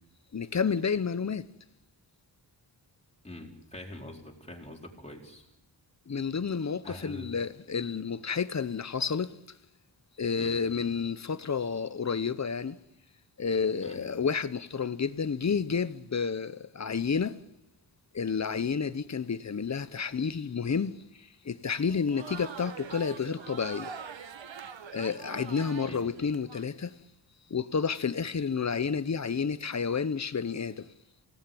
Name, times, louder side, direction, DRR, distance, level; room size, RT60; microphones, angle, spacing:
voice 1, 0.3-1.5 6.1-9.3 10.2-12.8 13.4-17.4 18.1-23.9 24.9-26.9 27.5-30.9, left 6 dB, 40° left, 0.9 m, -30 dB
voice 2, 3.2-5.5 6.8-7.3 10.3-10.6 13.8-14.0 25.8-26.1, left 1 dB, 15° left, 4.4 m, -44 dB
Crowd, 21.8-26.6, right 6 dB, 75° right, 1.3 m, -44 dB
28.0 x 18.0 x 9.2 m
wide cardioid pair, 150°, 45 cm